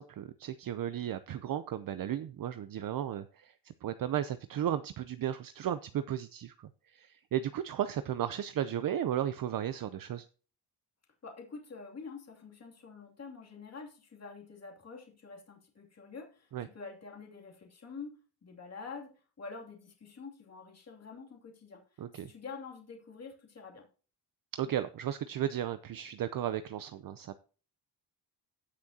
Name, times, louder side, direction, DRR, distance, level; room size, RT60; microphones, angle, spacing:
voice 1, 0.0-10.3 16.5-16.7 22.0-22.3 24.5-27.4, right 10 dB, 55° right, 12 dB, 0.6 m, -35 dB
voice 2, 11.2-19.1 19.4-21.8 22.2-23.9, left 4 dB, 35° left, 1 dB, 2.7 m, -47 dB
17.5 x 6.2 x 2.8 m, 0.38 s
cardioid pair, 115°, 42 cm